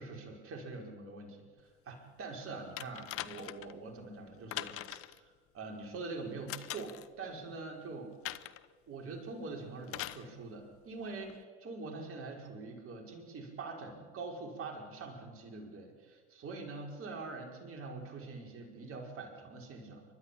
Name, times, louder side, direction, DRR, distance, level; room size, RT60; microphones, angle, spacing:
voice 1, 0.0-1.5 1.9-8.1 8.9-20.1, right 3 dB, 40° right, 1 dB, 5.5 m, -44 dB
sound 1, 2.8-3.7 4.5-5.2 6.5-7.1 8.2-8.7 9.9-10.3 11.3-11.4, left 13 dB, 40° left, 1.0 m, -41 dB
29.5 x 13.0 x 8.8 m, 1.5 s
hypercardioid pair, 75°, 34 cm